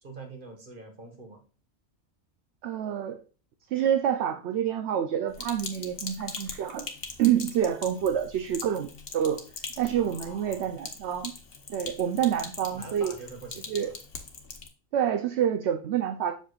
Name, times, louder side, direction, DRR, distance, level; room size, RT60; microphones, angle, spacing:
voice 1, 0.0-1.4 9.9-10.8 12.7-13.9, right 3 dB, 40° right, 3 dB, 1.7 m, -45 dB
voice 2, 2.6-3.2 3.7-6.9 7.2-9.4 9.8-11.3 11.7-13.2 13.7-13.9 14.9-16.3, right 9 dB, 60° right, 7 dB, 0.8 m, -27 dB
Sink (filling or washing), 5.3-14.7, left 4 dB, 50° left, 1.1 m, -42 dB
7.5 x 6.8 x 2.4 m, 0.36 s
omnidirectional pair, 1.4 m